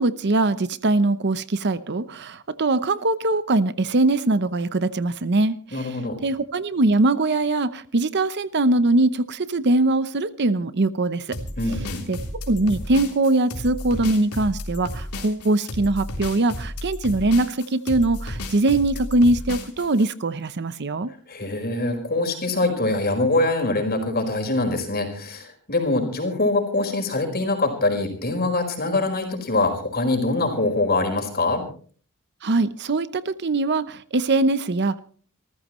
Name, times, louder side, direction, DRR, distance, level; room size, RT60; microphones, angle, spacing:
voice 1, 0.0-5.9 6.2-11.2 11.7-11.8 12.1-12.2 12.5-21.1 32.4-35.0, right 2 dB, 50° right, 14 dB, 0.7 m, -22 dB
voice 2, 5.7-6.2 11.6-12.0 21.3-31.6, left 2 dB, 45° left, 4 dB, 4.7 m, -24 dB
sound 1, 11.3-20.0, left 1 dB, 90° left, 3.3 m, -33 dB
27.0 x 14.5 x 3.1 m, 0.44 s
head